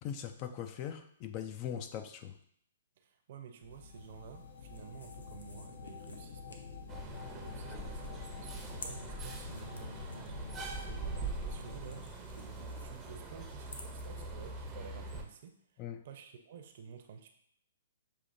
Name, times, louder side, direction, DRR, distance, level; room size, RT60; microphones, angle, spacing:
voice 1, 0.0-2.4 7.7-7.8 15.8-16.0, left 9 dB, 35° left, 9 dB, 0.4 m, -41 dB
voice 2, 3.0-6.6 7.3-17.3, right 7 dB, 55° right, 6 dB, 0.6 m, -52 dB
sound 1, 3.6-12.0, left 5 dB, 55° left, 0.9 m, -47 dB
sound 2, 3.7-15.2, left 2 dB, 85° left, 0.7 m, -56 dB
sound 3, 6.9-15.2, right 3 dB, 15° right, 0.6 m, -43 dB
6.6 x 2.7 x 2.6 m, 0.67 s
hypercardioid pair, 135°, 0 cm